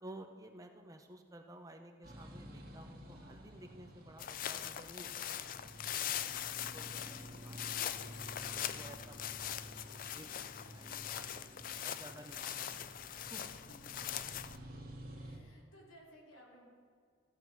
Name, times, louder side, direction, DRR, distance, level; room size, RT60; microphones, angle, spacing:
voice 1, 0.0-5.2 5.8-6.4 6.7-8.1 8.5-10.3 10.7-13.6, right 1 dB, 15° right, 5 dB, 0.6 m, -54 dB
sound 1, 2.0-15.4, equal, 45° right, 1.6 m, -52 dB
sound 2, 4.2-14.6, left 10 dB, 45° left, 0.3 m, -42 dB
voice 2, 6.2-6.9 13.8-14.3 15.1-16.7, equal, 85° left, -3 dB, 3.0 m, -60 dB
14.5 x 7.4 x 4.6 m, 2.1 s
head